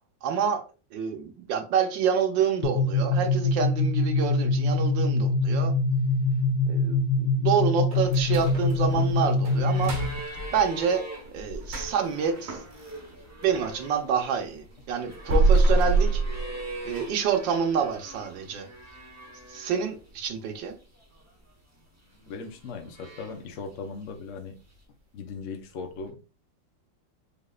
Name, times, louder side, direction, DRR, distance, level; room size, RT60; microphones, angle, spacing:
voice 1, 0.2-0.6 0.9-5.7 6.7-9.9 10.5-11.0 11.3-12.6 13.4-16.2 16.9-18.7 19.5-20.8, right 7 dB, 75° right, 1.5 m, -27 dB
sound 1, 2.6-10.2, left 2 dB, 80° left, 1.4 m, -24 dB
sound 2, 7.9-13.8 14.2-17.1 17.4-17.5 18.0-18.1 18.6-19.0 19.3-19.4 19.9-20.0, right 2 dB, 45° right, 1.6 m, -27 dB
sound 3, 8.4-20.1 20.4-21.3 22.0-23.7 24.8-24.9, right 1 dB, 25° right, 0.3 m, -43 dB
voice 2, 22.3-24.6 25.1-26.2, left 4 dB, 55° left, 0.9 m, -38 dB
5.2 x 3.5 x 2.4 m
omnidirectional pair, 2.1 m